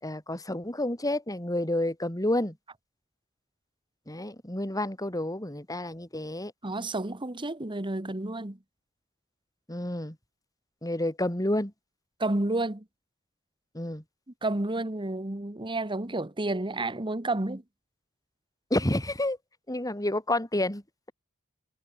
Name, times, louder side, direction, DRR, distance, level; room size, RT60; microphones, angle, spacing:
voice 1, 0.0-2.6 4.1-6.5 9.7-10.1 10.8-11.7 13.7-14.0 18.7-19.4 19.7-20.8, left 1 dB, 15° left, 5.0 m, -29 dB
voice 2, 6.6-8.6 12.2-12.8 14.4-17.6, right 2 dB, 20° right, 1.4 m, -30 dB
head